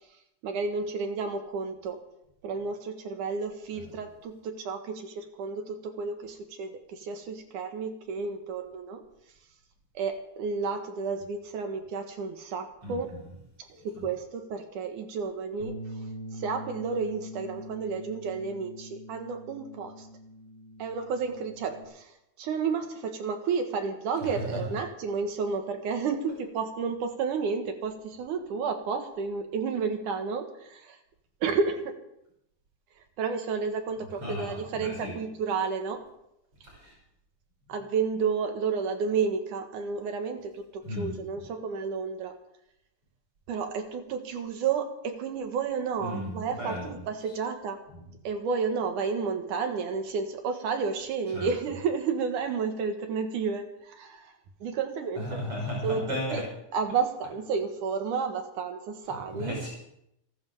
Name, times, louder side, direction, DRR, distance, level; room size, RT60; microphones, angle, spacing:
voice 1, 0.4-2.0 2.4-9.0 9.9-13.1 13.8-15.8 16.3-20.1 20.8-31.0 31.4-32.0 33.2-36.0 37.7-42.3 43.5-47.8 48.2-54.3 54.6-55.4 55.8-56.4 56.7-59.6, right 5 dB, 70° right, 6 dB, 2.8 m, -31 dB
voice 2, 12.8-13.2 14.0-14.1 24.2-24.6 34.2-35.1 36.6-36.9 40.8-41.1 46.0-46.9 47.9-48.1 51.3-51.5 55.2-56.4 59.3-59.7, equal, 40° right, -5 dB, 6.9 m, -35 dB
Bass guitar, 15.6-21.8, equal, 40° left, 3.7 m, -43 dB
29.5 x 11.5 x 3.6 m, 0.79 s
omnidirectional pair, 3.9 m